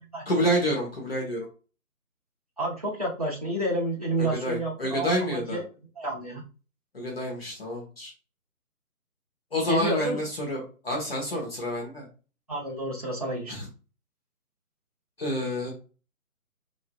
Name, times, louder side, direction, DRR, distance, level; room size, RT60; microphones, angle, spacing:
voice 1, 0.2-1.5 4.2-5.6 6.9-8.1 9.5-12.0 13.5-13.7 15.2-15.7, equal, 40° left, -2 dB, 1.2 m, -28 dB
voice 2, 2.6-5.6 6.0-6.4 9.7-10.2 12.5-13.5, right 1 dB, 25° right, -4 dB, 0.7 m, -29 dB
4.6 x 3.1 x 2.3 m, 0.35 s
figure-of-eight pair, 165°, 46 cm